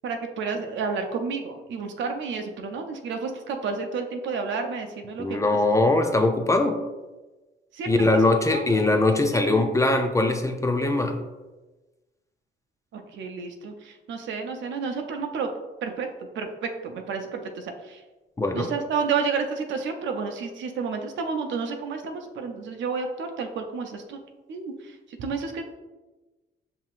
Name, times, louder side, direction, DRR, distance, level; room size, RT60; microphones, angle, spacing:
voice 1, 0.0-5.6 7.7-8.0 8.5-8.9 12.9-15.5 15.8-16.1 16.3-18.0 18.5-24.2 24.5-25.6, right 5 dB, 70° right, 5 dB, 0.6 m, -31 dB
voice 2, 5.2-6.8 7.9-11.2 18.4-18.7, left 2 dB, 15° left, 5 dB, 0.4 m, -21 dB
5.6 x 2.8 x 2.4 m, 1.2 s
cardioid pair, 90°, 20 cm